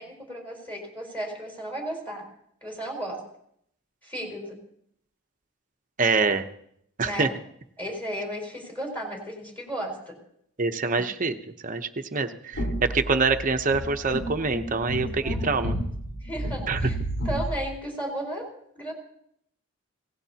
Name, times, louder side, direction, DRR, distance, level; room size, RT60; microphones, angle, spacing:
voice 1, 0.0-2.3 2.6-3.2 4.0-4.6 7.0-7.3 7.8-10.2 15.0-15.8 16.2-17.0 17.2-18.5 18.7-18.9, right 1 dB, 10° left, 0 dB, 4.6 m, -34 dB
voice 2, 6.0-6.5 7.0-7.3 10.6-11.4 11.6-12.7 12.9-15.8 16.7-16.8, right 4 dB, 35° right, 7 dB, 0.9 m, -25 dB
sound 1, 12.5-17.6, equal, 50° left, 4.0 m, -31 dB
25.5 x 17.0 x 2.9 m, 0.71 s
head